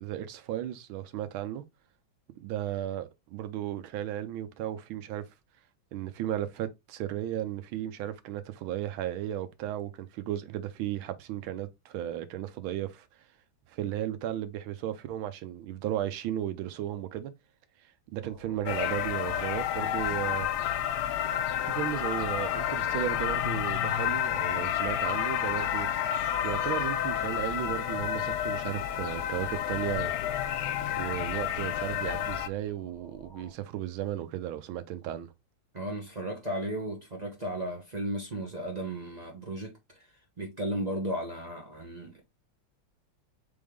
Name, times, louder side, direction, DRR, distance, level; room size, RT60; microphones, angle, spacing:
voice 1, 0.0-1.6 2.4-5.3 5.9-13.1 13.7-17.3 18.1-20.5 21.6-30.1 31.0-35.3, right 12 dB, 90° right, 1.5 m, -35 dB
sound 1, 18.2-33.5, right 2 dB, 25° left, 1.9 m, -51 dB
sound 2, 18.7-32.5, left 10 dB, 75° left, 1.0 m, -30 dB
voice 2, 35.7-40.1 40.4-42.2, right 1 dB, 40° right, 0.6 m, -35 dB
4.2 x 3.5 x 3.5 m
omnidirectional pair, 2.2 m